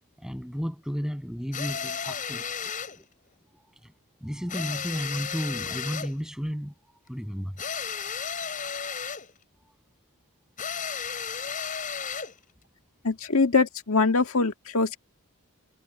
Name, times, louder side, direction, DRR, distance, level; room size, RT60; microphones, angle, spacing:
voice 1, 0.2-2.5 2.9-3.0 3.8-3.9 4.2-6.7 7.1-7.5, equal, 5° right, 6.7 m, -33 dB
sound 1, 1.5-3.0 4.5-6.2 7.6-9.3 10.6-12.4, left 6 dB, 35° left, 7.4 m, -33 dB
voice 2, 13.0-15.0, left 4 dB, 75° left, 1.6 m, -23 dB
head